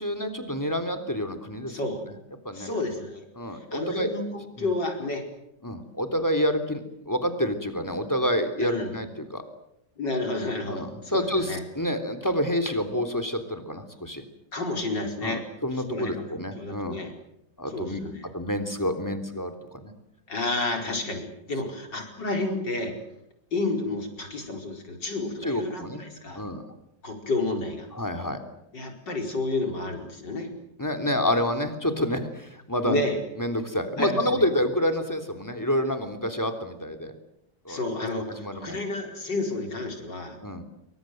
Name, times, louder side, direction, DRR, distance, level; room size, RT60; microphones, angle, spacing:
voice 1, 0.0-2.0 2.5-2.7 3.4-4.1 4.6-4.7 5.6-9.4 10.7-14.2 15.2-17.0 17.6-18.0 18.3-19.9 25.4-26.0 26.3-26.6 27.9-28.4 30.8-33.0 33.4-37.1 37.7-38.8 40.4-40.6, equal, 10° left, 6 dB, 3.4 m, -28 dB
voice 2, 1.7-2.0 2.5-3.2 3.5-5.3 8.6-9.0 10.0-11.6 14.5-15.5 15.7-17.1 17.7-18.3 20.3-23.0 23.5-26.4 27.0-27.9 28.7-30.5 32.8-33.2 34.0-34.5 37.7-40.4, left 2 dB, 65° left, 4 dB, 5.4 m, -31 dB
27.0 x 24.5 x 7.9 m, 0.79 s
omnidirectional pair, 2.0 m